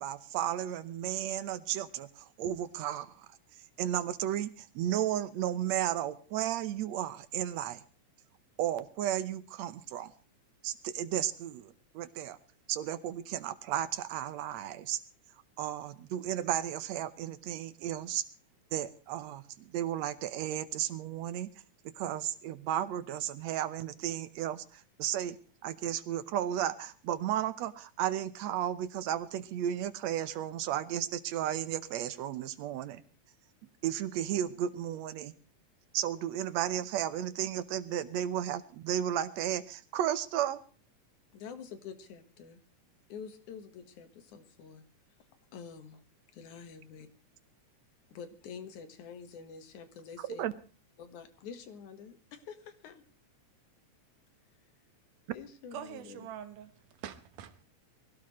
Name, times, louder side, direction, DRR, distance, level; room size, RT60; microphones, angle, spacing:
voice 1, 0.0-3.3 3.8-7.8 8.6-10.1 10.6-12.4 12.7-15.0 15.6-18.2 18.7-21.5 22.0-25.4 25.6-33.0 33.8-35.3 35.9-40.6 50.2-50.5, right 11 dB, 70° right, 2.0 m, -34 dB
voice 2, 41.3-42.6 43.1-44.8 45.5-46.0 46.3-47.1 48.1-50.4 51.0-53.0 55.3-56.3, left 6 dB, 75° left, 2.9 m, -47 dB
voice 3, 55.7-57.6, right 10 dB, 85° right, 2.7 m, -44 dB
23.5 x 16.5 x 3.2 m
omnidirectional pair, 3.6 m